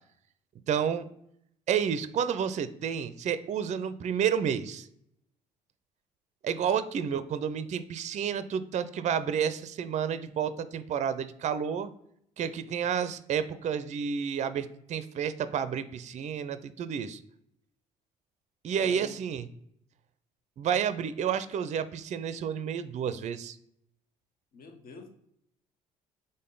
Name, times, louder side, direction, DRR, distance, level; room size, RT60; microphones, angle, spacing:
voice 1, 0.7-1.1 1.7-4.9 6.4-11.9 12.4-17.2 18.6-19.5 20.6-23.6, right 8 dB, 40° right, 0.4 m, -30 dB
voice 2, 18.7-19.2 24.5-25.1, left 4 dB, 55° left, 0.9 m, -46 dB
3.7 x 3.7 x 3.7 m
hypercardioid pair, 55°, 18 cm